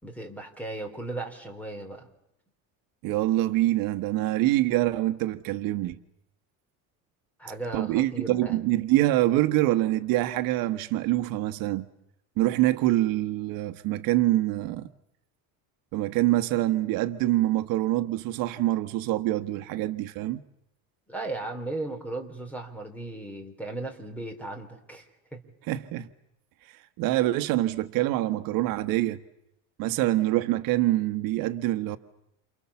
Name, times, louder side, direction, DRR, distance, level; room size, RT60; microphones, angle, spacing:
voice 1, 0.0-2.1 7.4-8.6 21.1-25.1 25.3-25.4, right 2 dB, 5° left, 3.5 m, -36 dB
voice 2, 3.0-6.0 7.7-11.9 12.4-14.9 15.9-20.4 25.7-26.1 27.0-29.2 29.8-32.0, right 16 dB, 65° right, 1.3 m, -25 dB
29.0 x 28.5 x 7.1 m
cardioid pair, 160°, 37 cm